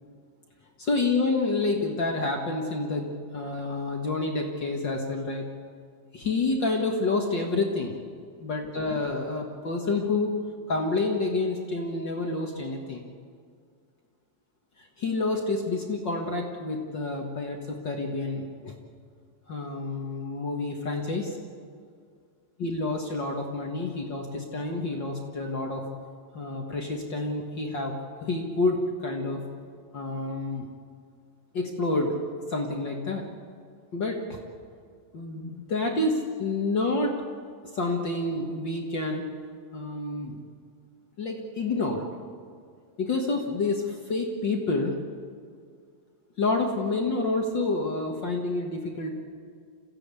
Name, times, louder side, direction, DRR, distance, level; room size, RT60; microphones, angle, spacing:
voice 1, 0.8-5.5 6.1-8.0 8.4-10.3 10.7-13.0 14.8-18.7 19.5-21.4 22.6-25.8 26.3-27.9 28.2-29.4 29.9-30.7 31.5-32.2 32.5-33.3 33.9-34.4 35.1-37.2 37.7-39.3 39.7-40.4 41.2-42.1 43.0-45.0 46.4-49.1, left 3 dB, 50° left, 1 dB, 1.5 m, -28 dB
27.5 x 15.5 x 8.4 m, 2.1 s
omnidirectional pair, 4.3 m